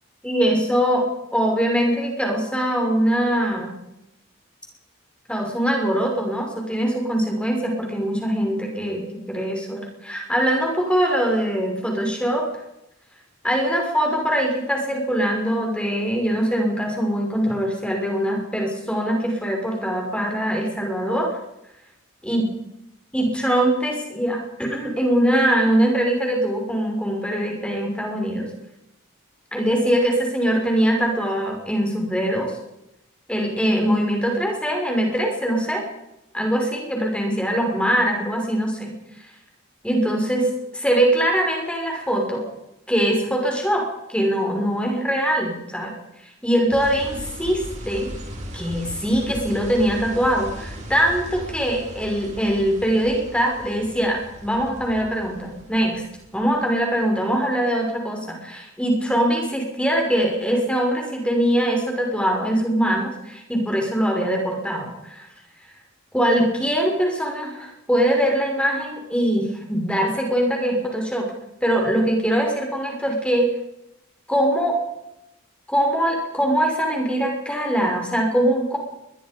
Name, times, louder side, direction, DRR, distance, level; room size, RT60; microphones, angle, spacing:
voice 1, 0.2-1.0 1.3-3.7 5.3-12.5 13.4-21.4 22.2-22.4 23.1-28.5 29.5-32.5 33.3-35.8 36.3-38.9 39.8-42.4 42.9-45.9 46.4-48.1 48.5-56.0 56.3-65.3 66.1-71.3 71.6-73.5 74.3-74.8 75.7-78.8, equal, 5° left, 1 dB, 5.9 m, -22 dB
sound 1, 46.7-56.8, equal, 35° right, 5.1 m, -38 dB
22.0 x 22.0 x 5.4 m, 0.84 s
head